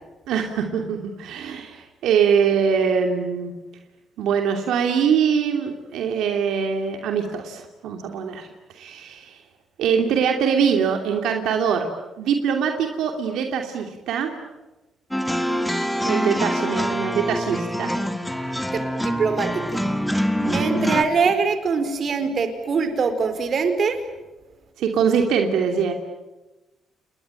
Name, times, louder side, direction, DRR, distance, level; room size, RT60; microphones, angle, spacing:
voice 1, 0.3-3.5 4.2-8.5 8.7-9.4 9.8-11.9 12.2-14.3 15.3-15.6 16.0-17.9 18.4-18.7 20.4-20.9 24.8-25.9, right 7 dB, 85° right, 4 dB, 2.8 m, -23 dB
sound 1, 15.1-21.0, equal, 5° left, 2.4 m, -25 dB
voice 2, 18.7-19.9 20.5-24.0, right 5 dB, 50° right, 9 dB, 4.2 m, -23 dB
29.5 x 21.0 x 9.1 m, 1.1 s
cardioid pair, 90°, 0 cm